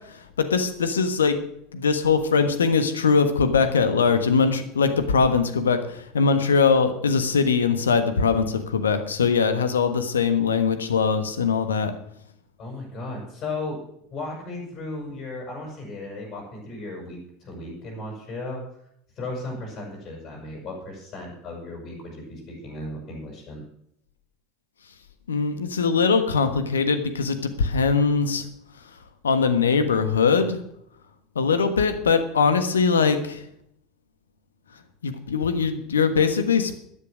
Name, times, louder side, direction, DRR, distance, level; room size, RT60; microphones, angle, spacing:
voice 1, 0.1-1.4 1.7-11.9 25.3-28.5 29.2-30.6 31.3-33.4 35.0-36.7, left 5 dB, 75° left, 9 dB, 1.3 m, -21 dB
voice 2, 12.6-13.8 14.1-18.6 19.2-23.6, left 2 dB, 40° left, -1 dB, 6.7 m, -35 dB
13.0 x 10.5 x 6.3 m, 0.73 s
figure-of-eight pair, 75°, 0 cm